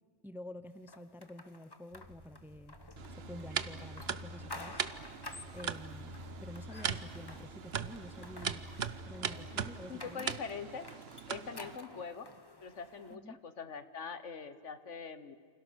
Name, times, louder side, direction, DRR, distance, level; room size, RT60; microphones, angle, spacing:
voice 1, 0.2-2.8 3.1-4.9 5.5-6.1 6.4-8.7 9.0-10.4 13.1-13.4, left 1 dB, ahead, 13 dB, 0.8 m, -49 dB
sound 1, 0.9-13.1, left 2 dB, 20° left, 1.2 m, -52 dB
sound 2, 1.9-9.7, left 2 dB, 75° right, 5.1 m, -50 dB
sound 3, 3.0-11.8, right 7 dB, 55° right, 1.1 m, -40 dB
voice 2, 9.9-10.9 11.3-12.3 12.6-15.4, left 5 dB, 75° left, 12 dB, 1.7 m, -43 dB
29.0 x 27.0 x 6.4 m, 2.2 s
omnidirectional pair, 1.3 m